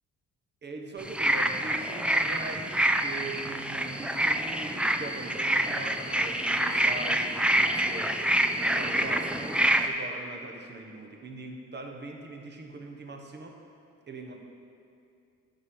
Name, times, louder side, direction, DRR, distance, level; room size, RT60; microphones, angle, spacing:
voice 1, 0.6-8.3 8.8-13.6 14.1-14.4, right 3 dB, 35° right, 3 dB, 1.1 m, -41 dB
sound 1, 1.0-9.9, right 1 dB, 5° right, 0.4 m, -27 dB
9.5 x 6.0 x 4.9 m, 2.5 s
cardioid pair, 90°, 30 cm